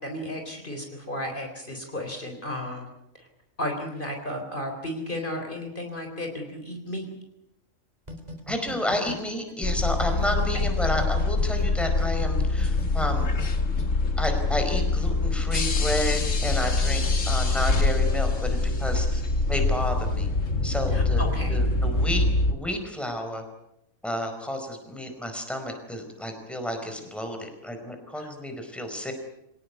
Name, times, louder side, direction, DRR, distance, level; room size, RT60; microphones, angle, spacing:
voice 1, 0.0-2.9 3.1-3.3 3.6-7.1 10.5-10.7 20.9-21.6 28.2-28.3, left 1 dB, 40° left, 3 dB, 4.1 m, -34 dB
sound 1, 8.1-10.6 11.0-13.8, left 1 dB, 30° right, 3.6 m, -39 dB
voice 2, 8.5-13.4 14.2-20.3 20.6-21.2 21.5-23.4 24.0-29.1, left 1 dB, ahead, 4 dB, 4.7 m, -31 dB
sound 2, 9.6-22.5, left 3 dB, 65° left, 2.4 m, -24 dB
26.0 x 18.5 x 9.6 m, 0.83 s
omnidirectional pair, 1.4 m